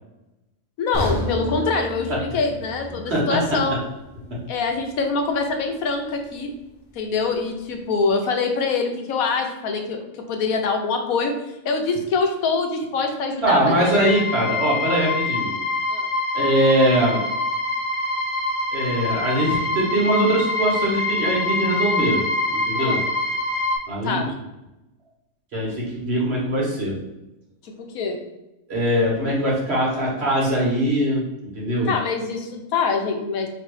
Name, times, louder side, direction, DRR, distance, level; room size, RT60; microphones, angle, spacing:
voice 1, 0.8-3.7 4.5-6.5 6.9-11.3 11.6-14.0 15.9-16.1 22.8-23.0 24.0-24.3 27.6-28.2 31.9-33.5, left 4 dB, 80° left, 4 dB, 1.2 m, -24 dB
sound 1, 0.9-5.0 5.3-5.5 6.1-6.2, equal, 15° left, 1.1 m, -32 dB
voice 2, 3.1-3.4 4.3-4.4 13.4-15.5 16.3-17.2 18.7-22.2 22.5-23.0 23.9-24.3 25.5-26.9 28.7-31.2 31.5-31.9, right 1 dB, 50° right, -4 dB, 1.6 m, -21 dB
sound 2, 13.8-23.8, left 2 dB, 60° left, 1.2 m, -25 dB
3.3 x 3.2 x 4.7 m, 0.95 s
omnidirectional pair, 1.5 m